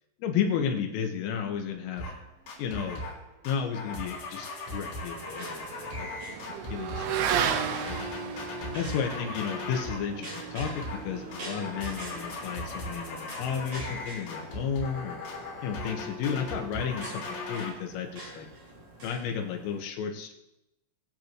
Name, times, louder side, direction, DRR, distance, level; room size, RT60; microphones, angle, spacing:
voice 1, 0.2-2.1 2.6-3.0 3.5-6.4 6.7-7.1 7.7-8.0 8.7-15.2 15.6-18.5 19.0-20.3, left 7 dB, 80° left, 3 dB, 3.8 m, -33 dB
sound 1, 2.0-2.2 2.5-3.2 3.4-10.1 10.3-11.1 11.3-17.7, left 2 dB, 65° left, 5.5 m, -38 dB
Motorcycle / Accelerating revving vroom, 4.3-13.1, right 8 dB, 80° right, 3.2 m, -35 dB
sound 2, 5.1-19.8, right 2 dB, 40° right, 4.2 m, -46 dB
22.5 x 8.1 x 3.0 m, 0.91 s
omnidirectional pair, 5.8 m